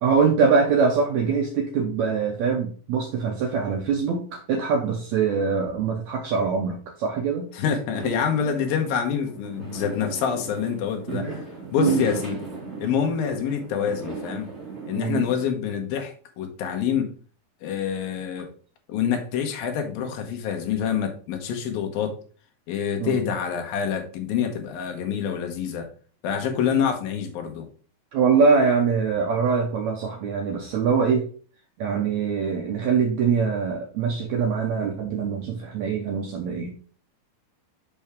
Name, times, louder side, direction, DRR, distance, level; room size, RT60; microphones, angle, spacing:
voice 1, 0.0-7.5 11.1-11.4 11.8-12.0 14.9-15.3 23.0-23.2 28.1-31.3 31.8-36.7, right 5 dB, 85° right, 3 dB, 1.6 m, -23 dB
voice 2, 7.5-11.3 11.7-12.4 12.8-14.5 14.9-17.1 17.6-18.5 18.9-22.1 22.7-25.9 26.2-27.7, left 7 dB, 75° left, 4 dB, 2.8 m, -26 dB
Fireworks, 7.9-15.0, right 3 dB, 25° right, 1.9 m, -36 dB
6.1 x 5.6 x 3.5 m, 0.42 s
omnidirectional pair, 4.2 m